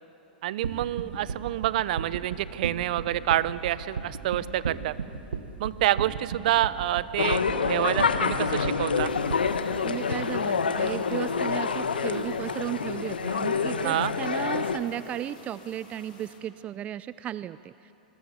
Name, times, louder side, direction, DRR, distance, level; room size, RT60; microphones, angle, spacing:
voice 1, 0.4-4.9 5.6-7.4 7.7-9.1 13.8-14.1, right 14 dB, 60° right, 17 dB, 0.8 m, -27 dB
sound 1, 0.6-9.4, right 6 dB, 80° right, 1.4 m, -34 dB
sound 2, 7.2-14.8, left 5 dB, 85° left, 1.3 m, -27 dB
sound 3, 8.9-16.4, left 4 dB, 65° left, 5.2 m, -52 dB
voice 2, 9.8-17.9, right 11 dB, 25° right, 16 dB, 0.4 m, -35 dB
25.5 x 21.5 x 7.4 m, 2.9 s
hypercardioid pair, 110°, 5 cm